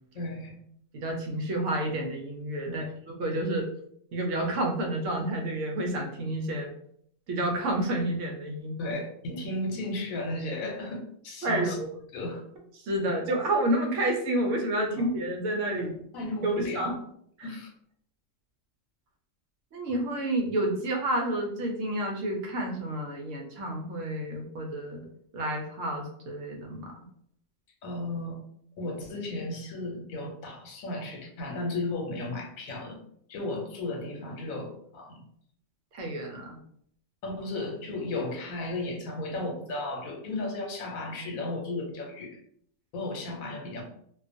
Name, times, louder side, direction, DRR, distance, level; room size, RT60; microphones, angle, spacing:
voice 1, 0.1-0.6 2.6-2.9 8.8-11.8 12.1-12.4 15.0-15.1 15.7-17.0 17.4-17.7 27.8-28.4 28.8-33.0 33.3-35.2 37.2-42.4 42.9-43.8, left 2 dB, 85° left, 1 dB, 1.1 m, -34 dB
voice 2, 0.9-2.8 3.2-3.7 4.1-6.7 7.3-8.8 9.3-9.4 11.4-11.9 12.8-15.9 16.4-16.9 17.4-17.5 19.7-25.0 25.3-26.9 35.9-36.6, right 1 dB, 70° right, 1 dB, 0.9 m, -29 dB
2.4 x 2.3 x 2.5 m, 0.67 s
omnidirectional pair, 1.4 m